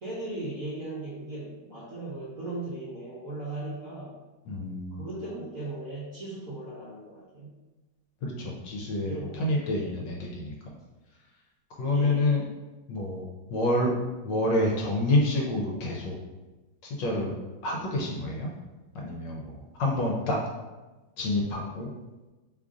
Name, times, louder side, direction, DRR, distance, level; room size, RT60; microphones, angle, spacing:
voice 1, 0.0-4.2 4.9-7.6 9.1-10.0 11.9-12.5, right 2 dB, 55° right, -7 dB, 0.9 m, -38 dB
voice 2, 4.5-5.0 8.2-10.5 11.8-12.4 12.9-13.2 13.5-13.9 14.2-16.2 16.8-17.3 17.6-18.5 18.9-20.4 21.2-21.9, left 1 dB, 75° left, -1 dB, 1.2 m, -28 dB
3.2 x 2.5 x 3.7 m, 1.2 s
omnidirectional pair, 2.2 m